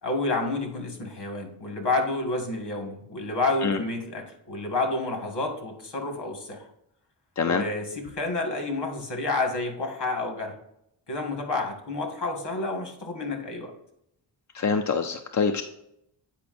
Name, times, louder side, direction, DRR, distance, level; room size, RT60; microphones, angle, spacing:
voice 1, 0.0-6.6 7.4-10.5 11.1-13.7, left 2 dB, 60° left, 3 dB, 1.8 m, -29 dB
voice 2, 14.5-15.6, left 5 dB, 40° left, 5 dB, 0.5 m, -25 dB
8.4 x 5.1 x 2.6 m, 0.77 s
wide cardioid pair, 95°, 45 cm